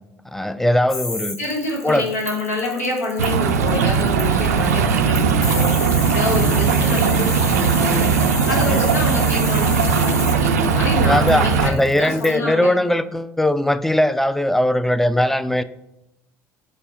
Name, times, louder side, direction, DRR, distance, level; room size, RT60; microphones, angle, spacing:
voice 1, 0.3-1.4 1.8-2.1 6.2-6.5 8.7-8.8 11.0-15.6, left 1 dB, 5° left, 12 dB, 0.4 m, -20 dB
sound 1, 0.9-12.3, left 2 dB, 40° left, 2.3 m, -30 dB
voice 2, 1.4-5.7 6.1-8.0 8.5-12.7, left 2 dB, 85° left, -3 dB, 1.5 m, -26 dB
sound 2, 3.2-11.7, right 6 dB, 80° right, 0.4 m, -18 dB
5.3 x 4.2 x 4.2 m, 0.88 s
figure-of-eight pair, 60°, 8 cm